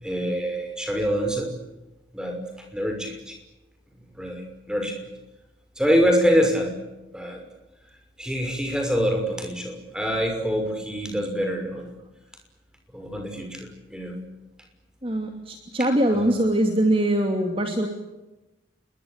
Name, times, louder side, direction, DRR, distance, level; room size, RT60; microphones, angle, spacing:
voice 1, 0.0-1.5 2.1-2.4 2.7-3.3 4.1-5.0 5.8-6.7 7.1-7.4 8.2-11.9 12.9-14.2 16.1-16.5, equal, 5° right, 4 dB, 5.9 m, -25 dB
voice 2, 15.0-17.9, right 1 dB, 30° right, 4 dB, 2.8 m, -22 dB
28.5 x 22.0 x 8.2 m, 1.0 s
head